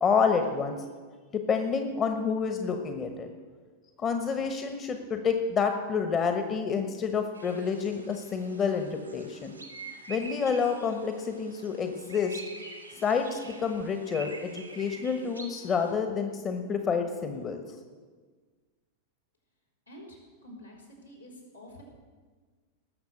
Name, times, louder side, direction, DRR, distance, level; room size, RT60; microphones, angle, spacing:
voice 1, 0.0-0.8 1.5-3.3 4.0-9.5 10.1-12.4 12.9-17.6, left 5 dB, 25° left, 6 dB, 1.1 m, -28 dB
sound 1, 7.3-15.9, right 3 dB, 85° right, 1.5 m, -46 dB
voice 2, 19.9-21.8, left 1 dB, 85° left, -3 dB, 4.4 m, -48 dB
19.0 x 7.0 x 6.7 m, 1.5 s
figure-of-eight pair, 90°, 0 cm